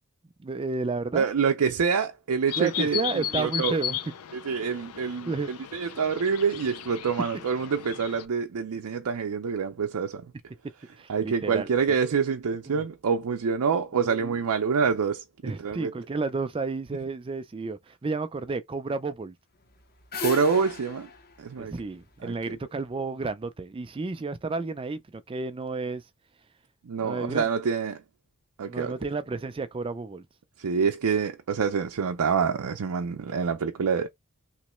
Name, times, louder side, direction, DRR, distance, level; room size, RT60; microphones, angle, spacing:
voice 1, 0.4-1.3 2.6-4.0 5.3-5.6 7.3-7.4 11.0-11.7 12.7-12.8 14.0-14.3 15.4-19.3 21.6-25.0 25.3-26.0 27.0-27.5 28.7-30.2, right 3 dB, 25° right, 0.4 m, -31 dB
voice 2, 1.1-3.7 4.3-10.2 11.1-15.9 20.2-21.1 21.4-21.7 22.2-22.5 26.9-28.0 28.6-28.9 30.6-34.1, right 6 dB, 90° right, 0.5 m, -26 dB
sound 1, 2.5-8.2, left 11 dB, 80° left, 0.5 m, -35 dB
sound 2, 19.6-22.8, left 4 dB, 45° left, 0.8 m, -37 dB
3.1 x 3.0 x 3.0 m
head